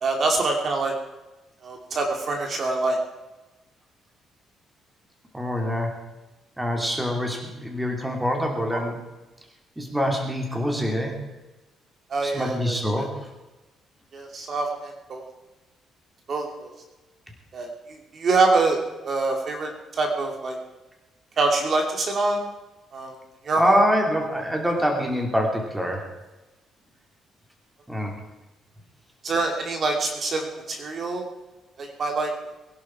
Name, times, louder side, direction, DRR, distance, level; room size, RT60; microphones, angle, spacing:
voice 1, 0.0-0.9 1.6-3.0 8.7-8.8 12.1-13.1 14.1-15.2 16.3-16.7 17.5-18.8 19.0-20.6 21.4-22.4 22.9-23.1 23.4-23.8 24.4-24.5 29.2-31.3 31.8-32.3, right 3 dB, 45° right, 2 dB, 2.7 m, -25 dB
voice 2, 5.3-5.9 6.6-9.0 9.8-11.1 12.2-13.1 23.6-26.0 27.9-28.1, equal, 5° right, 2 dB, 3.1 m, -25 dB
22.0 x 11.5 x 4.8 m, 1.1 s
cardioid pair, 115°, 0 cm